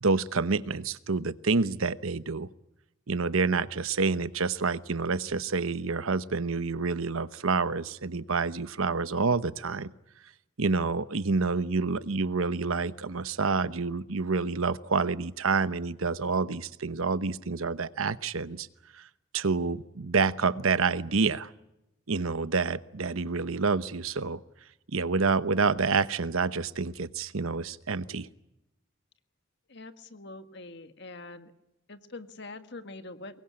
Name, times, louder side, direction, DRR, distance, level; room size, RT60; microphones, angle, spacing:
voice 1, 0.0-2.5 3.1-9.9 10.6-18.7 18.9-19.1 19.3-21.5 22.1-24.4 24.9-28.3, right 4 dB, 85° right, 14 dB, 0.9 m, -28 dB
voice 2, 29.7-31.5 31.9-33.4, left 2 dB, 55° left, 9 dB, 1.7 m, -44 dB
24.0 x 21.0 x 8.6 m, 0.90 s
head